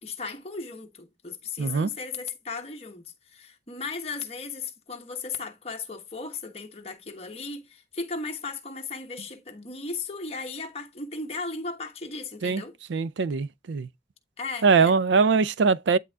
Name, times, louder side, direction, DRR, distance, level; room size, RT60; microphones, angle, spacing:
voice 1, 0.0-12.7 14.4-14.9, left 4 dB, 35° left, 1.3 m, -36 dB
voice 2, 1.6-1.9 12.4-12.6 12.9-13.9 14.6-16.0, right 5 dB, 85° right, 0.4 m, -22 dB
10.0 x 3.6 x 3.6 m
head